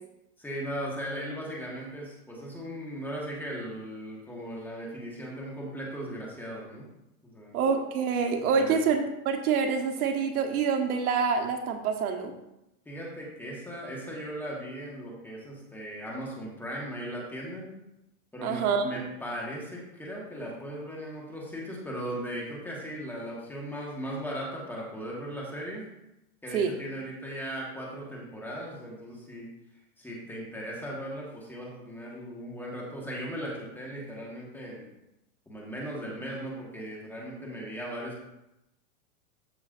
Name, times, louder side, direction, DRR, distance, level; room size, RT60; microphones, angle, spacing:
voice 1, 0.4-6.9 7.2-7.6 8.6-8.8 12.8-17.8 18.3-25.9 26.4-29.5 30.0-34.9 35.5-38.2, equal, 5° left, -4 dB, 1.4 m, -38 dB
voice 2, 7.5-12.3 18.4-19.0 26.5-26.7, right 5 dB, 70° right, 5 dB, 1.1 m, -26 dB
13.0 x 5.3 x 2.5 m, 0.89 s
supercardioid pair, 155°, 46 cm